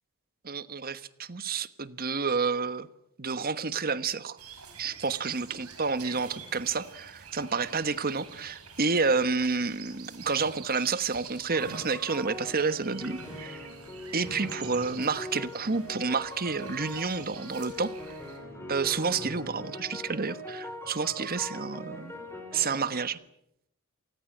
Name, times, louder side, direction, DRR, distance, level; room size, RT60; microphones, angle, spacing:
voice 1, 0.4-2.9 3.2-4.4 4.8-13.6 14.1-17.9 18.7-22.1 22.5-23.2, right 4 dB, 45° right, 14 dB, 1.2 m, -30 dB
sound 1, 4.4-18.4, right 5 dB, 80° right, 5.8 m, -47 dB
sound 2, 11.5-23.0, left 1 dB, 10° left, 6.6 m, -42 dB
27.5 x 20.0 x 8.7 m, 0.79 s
head